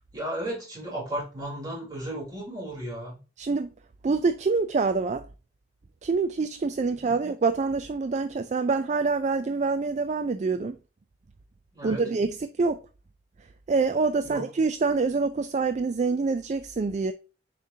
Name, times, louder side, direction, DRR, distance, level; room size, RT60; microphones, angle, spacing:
voice 1, 0.1-3.2 7.1-7.2 11.7-12.0 14.2-14.4, right 1 dB, 25° right, 3.6 m, -34 dB
voice 2, 3.4-3.7 4.0-5.2 6.0-10.8 11.8-12.8 13.7-17.1, right 4 dB, 40° right, 0.4 m, -26 dB
7.1 x 5.1 x 2.7 m
head